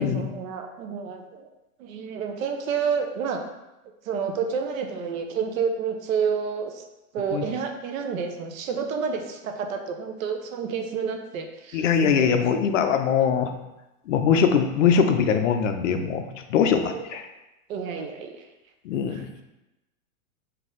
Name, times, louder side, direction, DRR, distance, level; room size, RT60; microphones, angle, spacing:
voice 1, 0.0-1.5 1.8-3.4 4.0-6.8 7.1-12.4 16.9-17.1 17.7-18.5 19.1-19.4, right 6 dB, 65° right, 4 dB, 0.7 m, -29 dB
voice 2, 11.7-13.5 14.1-17.2 18.9-19.2, left 7 dB, 60° left, 7 dB, 0.6 m, -22 dB
4.1 x 2.7 x 3.7 m, 0.97 s
supercardioid pair, 160°, 43 cm